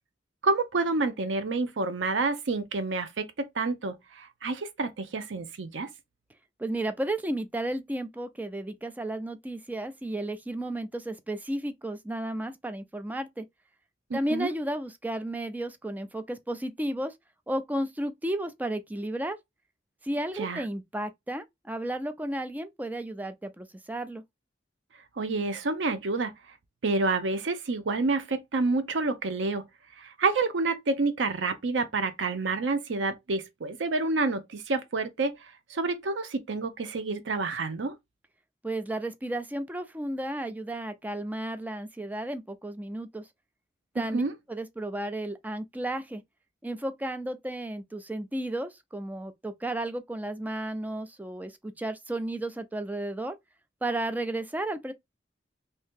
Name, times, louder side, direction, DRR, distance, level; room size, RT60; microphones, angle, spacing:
voice 1, 0.4-5.9 14.1-14.5 20.4-20.6 25.2-26.3 26.8-29.7 30.0-35.4 35.7-37.9 44.0-44.3, right 3 dB, 90° right, 0.6 m, -28 dB
voice 2, 6.6-13.4 14.1-17.1 17.5-19.4 20.0-24.2 38.6-43.2 44.0-44.2 44.5-46.2 46.6-53.4 53.8-54.9, right 1 dB, 10° right, 0.3 m, -33 dB
2.8 x 2.7 x 3.5 m
head